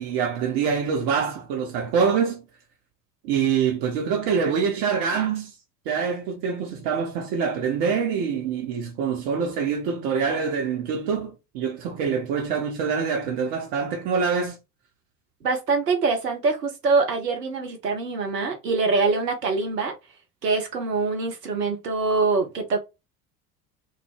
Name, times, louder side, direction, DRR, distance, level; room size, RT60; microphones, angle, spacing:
voice 1, 0.0-2.4 3.2-5.5 5.9-14.6, right 6 dB, 50° right, 0.8 m, -25 dB
voice 2, 15.4-19.9 20.4-22.8, right 4 dB, 80° right, 0.7 m, -24 dB
2.2 x 2.0 x 3.1 m
figure-of-eight pair, 65°, 48 cm